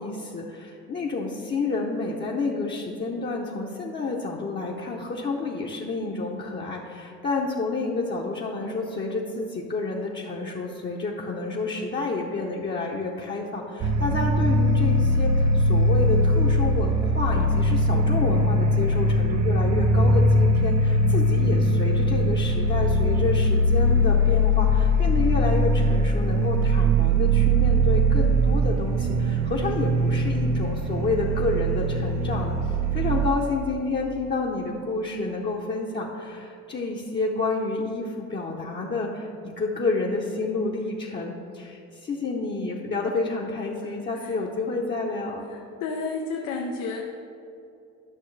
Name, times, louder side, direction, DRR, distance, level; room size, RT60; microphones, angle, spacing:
voice 1, 0.0-45.5, left 3 dB, 35° left, -2 dB, 0.8 m, -29 dB
sound 1, 13.8-33.3, equal, 65° right, 0.7 m, -21 dB
voice 2, 43.8-44.3 45.5-47.0, left 4 dB, 90° left, 0 dB, 0.7 m, -32 dB
11.5 x 6.2 x 3.3 m, 2.7 s
cardioid pair, 90°, 30 cm